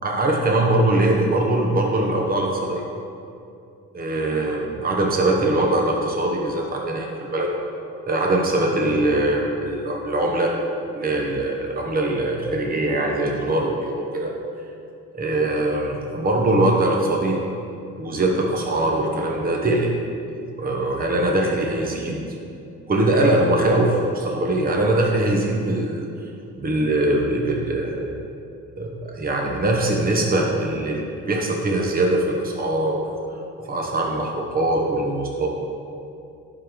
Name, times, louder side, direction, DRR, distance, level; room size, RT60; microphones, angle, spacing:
voice 1, 0.0-2.8 3.9-7.5 8.1-10.5 10.9-14.3 15.1-17.4 18.0-19.9 20.6-22.2 22.9-26.3 26.6-28.0 28.8-33.0 33.7-35.5, right 1 dB, 30° right, -1 dB, 1.0 m, -22 dB
11.0 x 4.0 x 5.0 m, 2.6 s
cardioid pair, 90°, 30 cm